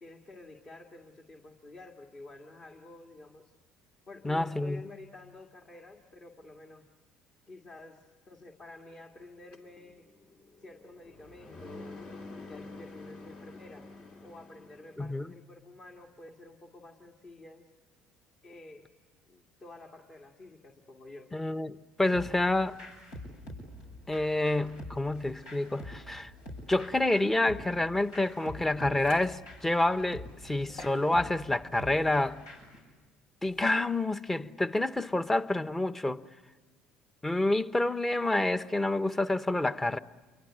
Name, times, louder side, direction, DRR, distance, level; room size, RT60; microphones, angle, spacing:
voice 1, 0.0-3.5 4.1-6.9 7.5-10.1 10.6-12.0 12.5-13.9 14.2-17.6 18.4-18.9 19.3-21.3, left 2 dB, 40° left, 2.1 m, -50 dB
voice 2, 4.2-4.8 15.0-15.3 21.3-22.8 24.1-26.3 26.7-32.4 33.4-36.2 37.2-40.0, left 2 dB, 15° left, 0.9 m, -28 dB
sound 1, 9.5-15.1, left 2 dB, 55° left, 2.8 m, -48 dB
sound 2, 22.1-32.8, left 1 dB, 90° left, 7.9 m, -46 dB
sound 3, 28.9-29.3 29.8-29.9 30.6-31.1 31.9-32.3 33.5-33.8, left 3 dB, 70° left, 2.9 m, -50 dB
28.0 x 24.0 x 8.8 m
supercardioid pair, 75°, 2 cm